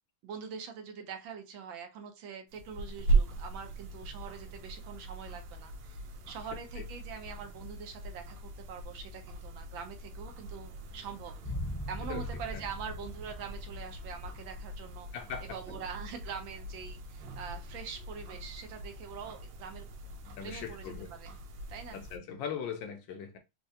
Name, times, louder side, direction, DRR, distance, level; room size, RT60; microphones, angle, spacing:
voice 1, 0.2-11.5 11.9-15.1 15.4-19.9 20.4-20.9 21.2-21.3 21.7-22.0, right 7 dB, 75° right, 1.4 m, -44 dB
sound 1, 2.5-22.2, right 3 dB, 90° right, 1.6 m, -38 dB
sound 2, 11.4-15.7 15.9-16.0, equal, 10° left, 0.7 m, -41 dB
voice 2, 15.1-15.6 20.4-21.1 21.9-23.4, left 7 dB, 75° left, 1.2 m, -40 dB
4.4 x 2.4 x 2.7 m
omnidirectional pair, 2.3 m